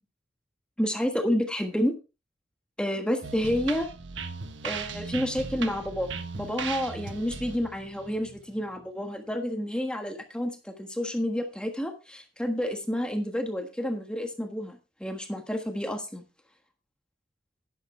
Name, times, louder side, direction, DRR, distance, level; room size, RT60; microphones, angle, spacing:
voice 1, 0.8-1.9 2.8-3.9 4.6-6.1 6.4-16.2, equal, 5° left, 4 dB, 1.4 m, -29 dB
sound 1, 3.2-8.8, right 5 dB, 80° right, 1.2 m, -38 dB
11.5 x 10.5 x 3.3 m, 0.30 s
head